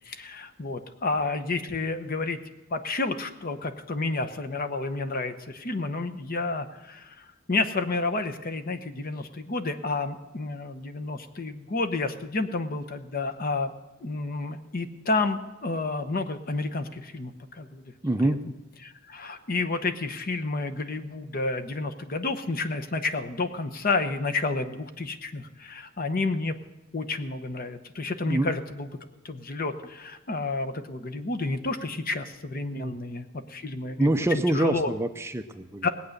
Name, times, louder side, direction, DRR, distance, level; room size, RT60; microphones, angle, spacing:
voice 1, 0.1-2.4 2.7-13.7 14.0-17.8 18.2-18.4 18.8-26.5 26.9-28.9 29.2-34.1 34.5-34.9 35.8-35.9, left 3 dB, 45° left, 9 dB, 0.9 m, -30 dB
voice 2, 18.0-18.4 28.3-28.5 32.7-32.9 34.0-35.9, right 1 dB, 15° right, 8 dB, 0.5 m, -25 dB
19.0 x 8.4 x 6.5 m, 1.0 s
head